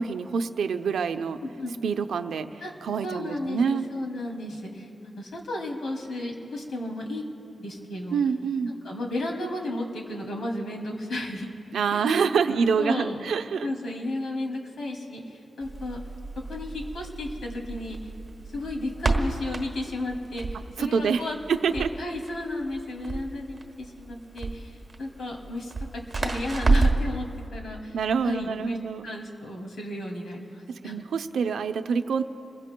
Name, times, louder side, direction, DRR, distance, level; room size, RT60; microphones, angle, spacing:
voice 1, 0.0-1.4 1.8-3.8 8.1-8.7 11.7-13.7 20.8-21.9 27.9-29.1 30.8-32.2, right 6 dB, 85° right, 8 dB, 0.6 m, -26 dB
voice 2, 1.4-1.7 2.6-2.7 3.0-7.2 7.6-8.2 8.8-11.5 11.9-12.1 12.5-13.2 13.6-16.0 16.4-18.1 18.5-21.4 21.7-25.9 26.2-27.3 27.5-28.0 28.2-28.8 29.0-31.0, left 1 dB, 65° left, 0 dB, 2.6 m, -33 dB
Crackle, 15.6-27.2, right 3 dB, 30° right, 1.4 m, -30 dB
28.5 x 22.0 x 2.3 m, 2.7 s
wide cardioid pair, 145°, 0 cm